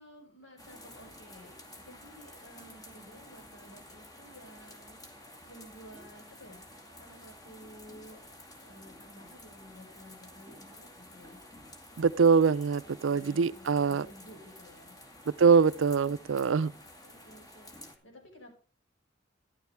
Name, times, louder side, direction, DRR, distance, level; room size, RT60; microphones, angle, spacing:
voice 1, 0.0-6.7 6.9-8.2 8.6-11.4 12.8-15.0 17.0-17.8 18.0-18.6, equal, 75° left, 5.9 m, -53 dB
sound 1, 0.6-18.0, left 1 dB, 20° left, 2.1 m, -51 dB
voice 2, 12.0-14.0 15.4-16.7, right 5 dB, 85° right, 0.4 m, -23 dB
13.5 x 11.5 x 3.5 m
head